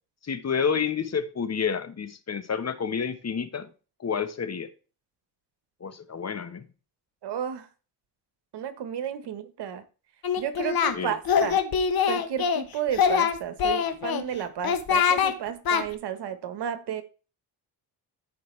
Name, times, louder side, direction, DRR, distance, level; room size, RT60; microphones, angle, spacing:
voice 1, 0.2-3.7 4.0-4.7 5.8-6.6 10.9-11.1, left 6 dB, 40° left, 11 dB, 1.2 m, -29 dB
voice 2, 7.2-7.7 8.5-9.8 10.4-11.6 12.0-17.0, right 9 dB, 70° right, 11 dB, 1.4 m, -32 dB
Singing, 10.2-10.9 11.2-12.6 12.9-14.2 14.6-15.3 15.6-15.8, left 7 dB, 55° left, 1.2 m, -23 dB
14.0 x 5.3 x 3.3 m, 0.35 s
cardioid pair, 90°, 42 cm